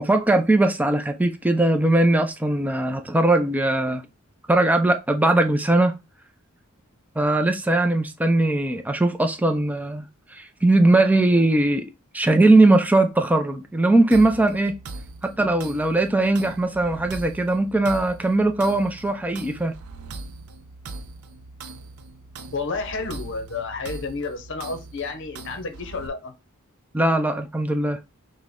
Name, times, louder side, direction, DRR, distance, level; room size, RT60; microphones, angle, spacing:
voice 1, 0.0-4.0 4.5-6.0 7.2-11.9 12.1-14.7 15.2-19.7 26.9-28.0, right 2 dB, 5° right, 0.4 m, -20 dB
sound 1, 14.1-26.1, right 3 dB, 80° right, 0.6 m, -40 dB
voice 2, 22.5-26.3, left 4 dB, 55° left, 0.7 m, -31 dB
6.0 x 2.1 x 3.5 m
head